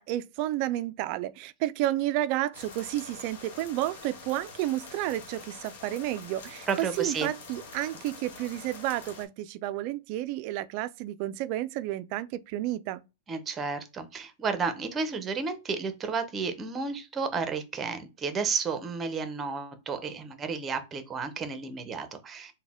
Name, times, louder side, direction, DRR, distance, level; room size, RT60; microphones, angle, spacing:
voice 1, 0.0-13.0, right 14 dB, 45° right, 0.3 m, -31 dB
sound 1, 2.5-9.3, left 4 dB, 65° left, 1.2 m, -46 dB
voice 2, 6.7-7.3 13.3-22.5, right 5 dB, 20° right, 0.7 m, -32 dB
4.1 x 2.1 x 3.5 m
hypercardioid pair, 140°, 0 cm